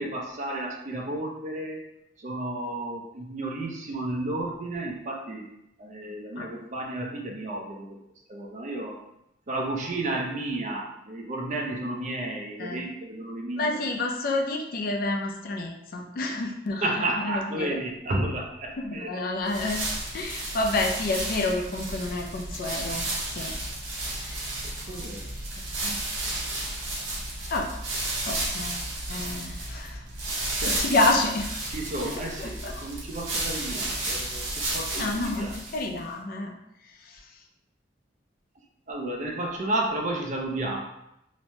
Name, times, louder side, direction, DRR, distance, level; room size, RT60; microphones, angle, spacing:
voice 1, 0.0-1.8 2.2-5.5 5.8-8.0 8.3-9.0 9.5-13.8 16.8-19.1 24.6-25.2 30.6-30.8 31.7-34.5 34.7-35.5 38.9-40.8, right 2 dB, 40° right, 0 dB, 0.4 m, -32 dB
voice 2, 13.6-17.8 18.8-19.8 20.1-23.5 24.0-24.9 25.8-26.0 27.5-27.7 28.2-28.8 29.1-30.0 30.7-31.5 32.4-32.9 34.9-36.5 36.8-37.4, left 2 dB, 50° left, 2 dB, 0.4 m, -29 dB
sound 1, 19.5-36.0, right 2 dB, 85° right, 0.7 m, -32 dB
3.0 x 2.1 x 2.7 m, 0.83 s
head